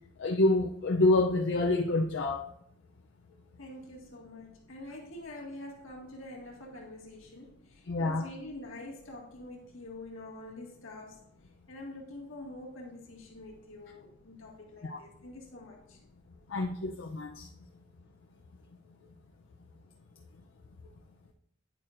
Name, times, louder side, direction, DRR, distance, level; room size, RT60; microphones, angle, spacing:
voice 1, 0.2-2.4 7.9-8.2 14.8-15.0 16.5-17.5, left 2 dB, 65° left, 3 dB, 0.5 m, -27 dB
voice 2, 3.6-11.2 11.7-16.0, left 2 dB, 90° left, -1 dB, 1.8 m, -46 dB
9.4 x 8.4 x 2.5 m, 0.71 s
head